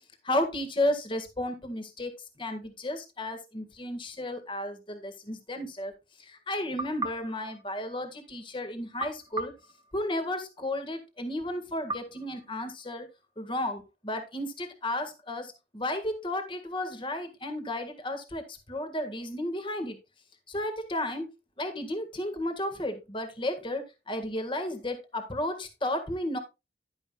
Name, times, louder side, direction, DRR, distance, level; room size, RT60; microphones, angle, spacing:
voice 1, 0.2-2.1 2.4-5.9 6.2-9.5 9.9-13.1 13.4-20.0 20.5-21.3 21.6-26.4, left 1 dB, 30° left, 7 dB, 1.7 m, -33 dB
sound 1, 6.8-8.4 9.0-10.6 11.9-13.2, right 2 dB, 20° right, 1.3 m, -40 dB
11.0 x 9.9 x 2.3 m, 0.26 s
head